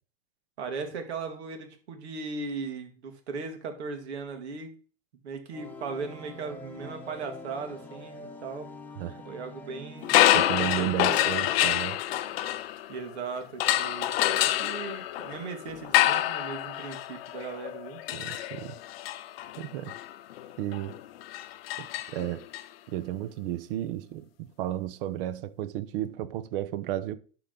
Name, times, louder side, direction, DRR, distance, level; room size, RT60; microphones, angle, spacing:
voice 1, 0.6-4.7 5.2-8.7 9.3-10.1 10.8-11.2 11.4-11.8 12.9-18.0, right 4 dB, 85° right, 2.0 m, -38 dB
sound 1, 5.5-12.4, left 2 dB, 5° left, 0.9 m, -46 dB
sound 2, 10.0-13.1 13.6-22.6, left 13 dB, 65° left, 0.7 m, -27 dB
voice 2, 10.3-12.0 18.1-18.8 19.6-20.0 20.6-21.0 21.8-22.5 22.9-27.2, right 13 dB, 55° right, 0.7 m, -33 dB
11.5 x 3.8 x 3.9 m
supercardioid pair, 145°, 32 cm